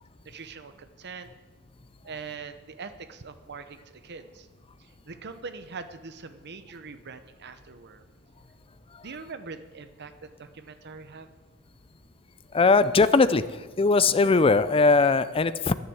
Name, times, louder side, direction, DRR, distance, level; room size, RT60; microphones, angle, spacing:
voice 1, 0.2-1.3 2.0-4.5 4.8-8.0 9.0-11.3, right 4 dB, 50° right, 10 dB, 0.8 m, -42 dB
voice 2, 12.5-13.4 13.8-15.7, left 4 dB, 25° left, 14 dB, 0.4 m, -20 dB
11.0 x 9.9 x 7.8 m, 1.3 s
head